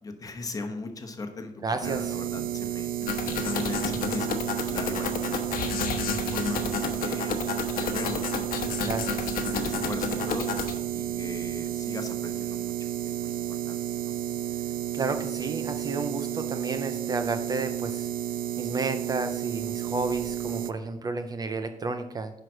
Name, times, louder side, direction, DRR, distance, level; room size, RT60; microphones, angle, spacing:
voice 1, 0.0-2.9 3.4-5.4 6.3-7.4 7.7-8.4 8.8-10.5 10.9-12.7 13.0-14.2, left 3 dB, 25° left, 6 dB, 1.0 m, -39 dB
voice 2, 1.6-2.2 8.8-9.3 14.9-18.1 18.6-22.3, right 3 dB, 25° right, 8 dB, 0.4 m, -32 dB
sound 1, 1.8-20.7, right 10 dB, 90° right, 0.4 m, -32 dB
sound 2, 3.0-10.8, left 6 dB, 85° left, 1.1 m, -31 dB
10.5 x 4.9 x 6.1 m, 0.89 s
wide cardioid pair, 175°, 14 cm